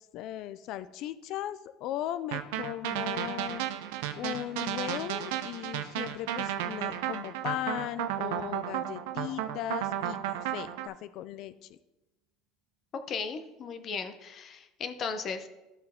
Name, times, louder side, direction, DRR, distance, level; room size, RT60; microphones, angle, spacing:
voice 1, 0.0-3.6 3.9-11.8, left 12 dB, 60° left, 15 dB, 0.3 m, -37 dB
sound 1, 2.3-10.9, right 11 dB, 90° right, 0.6 m, -33 dB
sound 2, 2.9-8.5, right 12 dB, 35° right, 1.0 m, -52 dB
voice 2, 13.1-15.5, left 5 dB, 40° left, 9 dB, 0.7 m, -36 dB
13.0 x 4.4 x 3.6 m, 1.0 s
cardioid pair, 135°, 0 cm